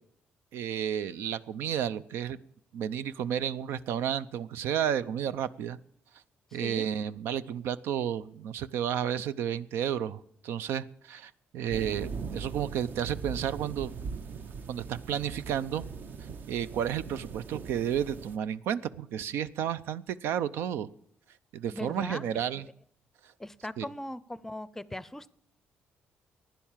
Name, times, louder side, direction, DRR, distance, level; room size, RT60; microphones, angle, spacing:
voice 1, 0.5-2.4 2.7-5.8 6.5-13.9 14.7-15.8 16.5-20.9 21.5-22.6 23.8-23.9, right 9 dB, 85° right, 15 dB, 0.6 m, -32 dB
voice 2, 6.5-6.9 21.7-22.7 23.4-25.3, left 1 dB, 10° left, 18 dB, 0.6 m, -40 dB
sound 1, 11.7-18.4, right 5 dB, 55° right, 1.0 m, -40 dB
15.5 x 10.5 x 7.4 m, 0.72 s
cardioid pair, 105°, 4 cm